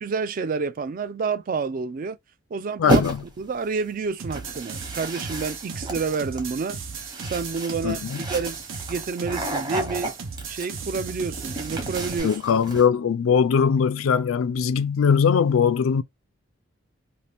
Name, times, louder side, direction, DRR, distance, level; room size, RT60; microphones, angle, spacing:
voice 1, 0.0-2.2 2.5-3.0 3.4-6.8 7.2-8.0 8.3-8.6 8.9-10.1 10.5-12.3, right 5 dB, 45° right, 0.3 m, -29 dB
voice 2, 2.8-3.2 7.8-8.2 12.2-16.0, left 6 dB, 85° left, 0.4 m, -21 dB
sound 1, 2.9-3.4 4.3-12.9, right 1 dB, 20° right, 0.9 m, -31 dB
sound 2, 4.2-12.2, right 5 dB, 75° right, 0.7 m, -36 dB
2.7 x 2.5 x 3.3 m
head